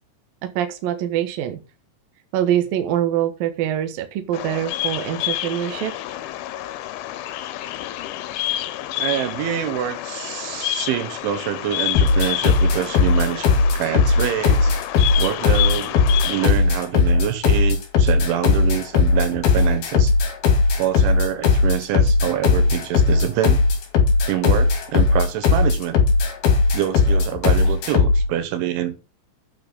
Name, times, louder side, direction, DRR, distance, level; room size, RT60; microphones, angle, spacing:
voice 1, 0.6-1.6 2.3-5.9, right 11 dB, 65° right, 2.6 m, -24 dB
Bird vocalization bird call bird song, 4.3-16.5, left 14 dB, 80° left, 3.2 m, -29 dB
voice 2, 9.0-13.5 13.8-14.7 15.2-16.0 16.2-20.1 20.8-23.6 24.3-26.0 26.7-29.0, right 11 dB, 80° right, 3.7 m, -25 dB
sound 1, 12.0-28.3, left 4 dB, 60° left, 3.7 m, -17 dB
9.1 x 6.2 x 5.2 m
omnidirectional pair, 5.4 m